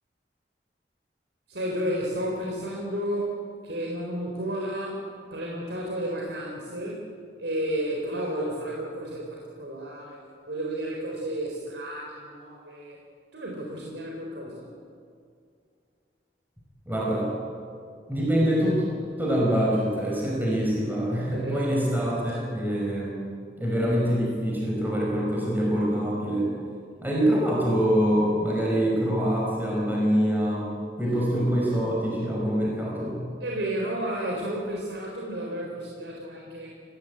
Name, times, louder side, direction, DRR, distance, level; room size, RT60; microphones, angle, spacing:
voice 1, 1.5-5.1 5.3-7.0 7.4-10.2 10.5-13.0 13.3-14.7 21.3-21.7 22.3-22.4 33.4-36.7, right 1 dB, 85° right, -2 dB, 4.1 m, -32 dB
voice 2, 16.9-17.3 18.1-18.8 19.2-23.2 23.6-26.5 27.0-30.7 31.0-33.2, equal, 10° right, -4 dB, 5.6 m, -25 dB
26.5 x 17.0 x 8.6 m, 2.3 s
head